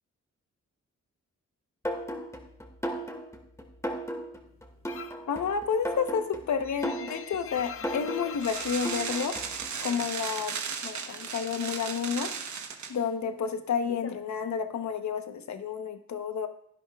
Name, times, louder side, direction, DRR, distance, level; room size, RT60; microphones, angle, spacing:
sound 1, 1.9-9.7, equal, 10° left, 2.0 m, -36 dB
sound 2, 4.9-5.3 5.7-10.5 10.8-11.9 12.1-15.0, left 7 dB, 50° left, 0.6 m, -44 dB
voice 1, 5.3-9.3 9.8-10.5 10.8-12.3 12.9-16.5, left 6 dB, 70° left, 8 dB, 1.0 m, -30 dB
sound 3, 8.4-12.9, right 6 dB, 70° right, 1.1 m, -36 dB
16.5 x 10.5 x 2.4 m, 0.69 s
cardioid pair, 70°, 29 cm